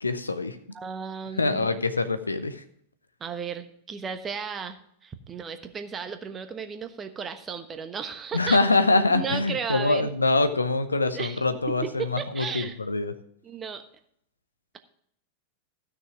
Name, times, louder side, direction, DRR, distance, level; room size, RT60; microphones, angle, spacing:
voice 1, 0.0-0.6 1.4-2.6 8.3-13.1, left 3 dB, 80° left, 11 dB, 0.8 m, -24 dB
voice 2, 0.7-1.8 3.2-8.6 9.1-10.1 11.1-12.8 13.4-13.8, right 6 dB, 20° right, 8 dB, 1.1 m, -35 dB
13.5 x 6.2 x 4.9 m, 0.68 s
figure-of-eight pair, 90°, 0 cm